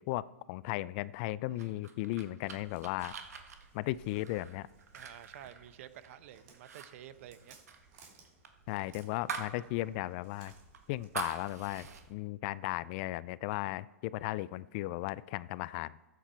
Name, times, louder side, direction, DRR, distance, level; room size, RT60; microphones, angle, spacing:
voice 1, 0.0-3.1 3.7-4.7 8.7-10.5 10.9-15.9, left 17 dB, 45° left, 19 dB, 0.3 m, -36 dB
sound 1, 1.6-6.2 6.5-6.9 7.1-9.6 9.9-10.0 10.5-12.0, right 6 dB, 85° right, 1.4 m, -44 dB
Walk footsteps, 2.5-12.1, right 4 dB, 45° right, 2.7 m, -60 dB
voice 2, 4.9-7.6, right 11 dB, 60° right, 13 dB, 0.8 m, -51 dB
14.5 x 8.2 x 4.4 m, 1.1 s
hypercardioid pair, 130°, 8 cm